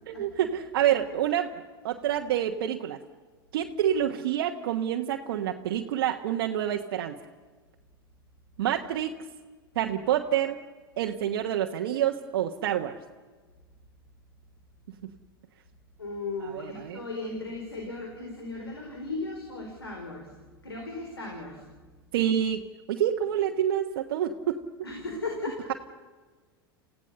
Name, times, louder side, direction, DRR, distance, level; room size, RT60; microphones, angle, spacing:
voice 1, 0.1-1.5 1.8-3.0 3.5-7.1 8.6-9.1 9.7-10.6 11.0-12.9 16.4-17.0 22.1-22.6 22.9-24.6, right 10 dB, 70° right, 2 dB, 1.3 m, -27 dB
voice 2, 16.0-20.3 20.6-21.6 24.8-25.6, left 3 dB, 90° left, 1 dB, 4.7 m, -36 dB
29.0 x 16.5 x 7.0 m, 1.4 s
hypercardioid pair, 90°, 13 cm